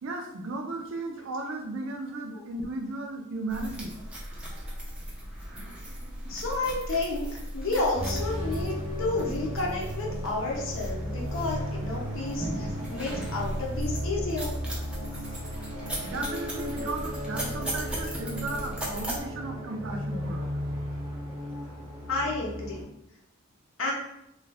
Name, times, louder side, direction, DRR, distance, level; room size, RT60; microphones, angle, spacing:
voice 1, 0.0-4.0 16.0-20.6, right 2 dB, 70° right, 3 dB, 0.4 m, -35 dB
sound 1, 3.5-19.2, equal, 5° right, 0.4 m, -37 dB
voice 2, 6.3-14.5 20.1-20.2 22.1-22.9 23.8-23.9, left 2 dB, 70° left, -2 dB, 0.6 m, -31 dB
sound 2, 7.9-22.8, equal, 20° left, 0.7 m, -35 dB
2.5 x 2.3 x 3.3 m, 0.83 s
head